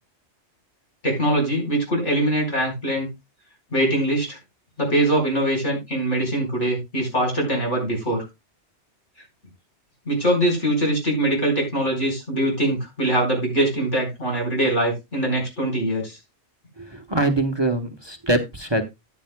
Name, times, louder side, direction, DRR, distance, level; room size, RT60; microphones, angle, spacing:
voice 1, 1.0-3.1 3.7-4.4 4.8-8.2 10.1-16.2, right 1 dB, 80° left, 2 dB, 4.9 m, -22 dB
voice 2, 16.8-18.8, right 2 dB, 25° right, 6 dB, 1.0 m, -23 dB
14.0 x 9.5 x 2.2 m, 0.22 s
omnidirectional pair, 1.2 m